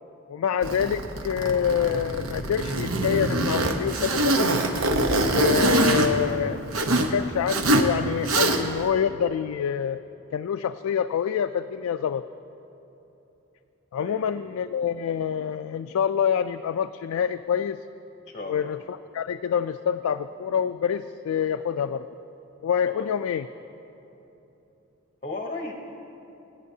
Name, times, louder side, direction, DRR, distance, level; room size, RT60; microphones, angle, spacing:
voice 1, 0.3-4.8 5.2-6.6 6.9-10.0 10.3-12.3 13.9-17.8 18.4-22.1 22.6-23.4, left 8 dB, 85° left, 9 dB, 0.3 m, -26 dB
Zipper (clothing), 0.6-7.1 7.5-7.9 8.2-8.8, right 2 dB, 85° right, 0.9 m, -24 dB
voice 2, 14.0-14.3 18.3-18.7 22.9-23.1 25.2-25.7, left 2 dB, 30° left, 2 dB, 0.7 m, -35 dB
28.0 x 9.5 x 2.7 m, 3.0 s
head